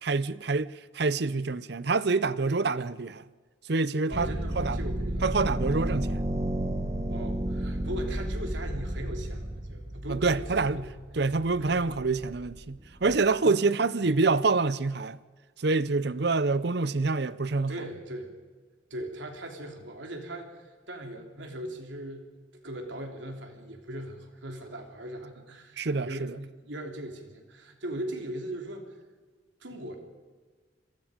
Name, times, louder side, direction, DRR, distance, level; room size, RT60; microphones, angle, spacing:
voice 1, 0.0-3.2 3.7-4.8 5.2-6.2 10.1-10.8 11.2-15.2 15.6-17.7 25.8-26.3, right 3 dB, 55° right, 0.7 m, -26 dB
sound 1, 4.1-13.2, right 1 dB, 35° right, 1.8 m, -33 dB
voice 2, 4.1-5.3 7.1-10.9 11.6-12.1 13.4-13.7 17.7-18.3 18.9-20.5 20.9-28.9 29.6-30.0, right 1 dB, 75° right, 3.4 m, -39 dB
28.0 x 22.5 x 5.2 m
head